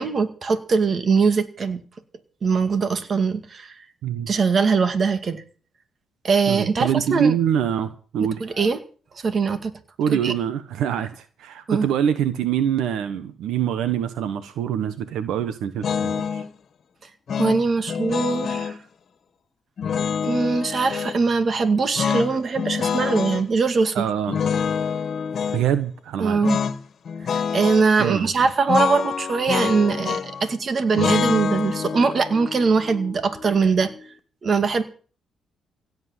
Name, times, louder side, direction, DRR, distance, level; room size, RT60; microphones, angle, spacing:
voice 1, 0.0-1.8 2.4-3.7 4.3-5.4 6.2-7.3 8.4-8.8 9.2-9.7 10.1-10.3 11.7-11.9 17.4-18.8 20.2-24.0 26.2-26.6 27.3-33.9 34.4-34.8, right 4 dB, 45° right, 10 dB, 2.2 m, -21 dB
voice 2, 6.5-8.4 10.0-16.4 23.9-24.4 25.5-26.5 28.0-28.5, right 9 dB, 80° right, 11 dB, 1.3 m, -24 dB
sound 1, 15.8-16.5 17.3-18.8 19.8-21.2 22.0-23.4 24.3-25.6 26.4-26.8 27.1-27.9 28.7-30.4 30.9-34.0, left 6 dB, 55° left, 1.7 m, -26 dB
17.0 x 8.1 x 8.0 m, 0.41 s
cardioid pair, 90°, 0 cm